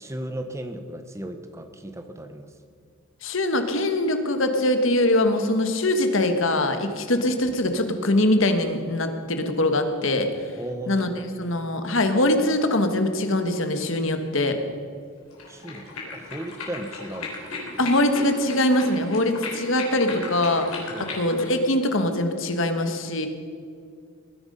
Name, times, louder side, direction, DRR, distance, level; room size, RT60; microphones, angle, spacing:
voice 1, 0.0-2.5 10.6-11.5 15.5-17.3 20.9-21.2, right 1 dB, 15° right, 8 dB, 0.9 m, -36 dB
voice 2, 3.2-10.3 10.9-11.1 11.4-14.6 17.8-20.8 21.1-23.3, left 1 dB, 65° left, 7 dB, 1.5 m, -22 dB
sound 1, 15.3-21.5, left 3 dB, 85° left, 3.8 m, -36 dB
19.5 x 10.5 x 5.5 m, 2.3 s
head